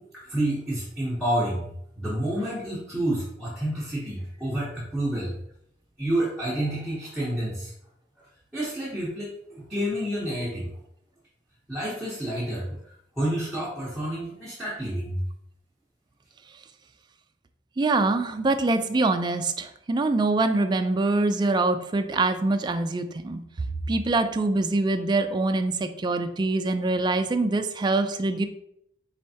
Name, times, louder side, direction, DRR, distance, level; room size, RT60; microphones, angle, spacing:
voice 1, 0.0-1.7 2.0-5.3 6.0-7.7 8.2-8.3 8.5-10.7 11.7-12.8 13.2-15.2, right 1 dB, ahead, -9 dB, 0.9 m, -29 dB
voice 2, 17.8-23.4 23.9-28.5, right 2 dB, 25° right, 8 dB, 0.3 m, -24 dB
4.4 x 3.2 x 2.7 m, 0.74 s
head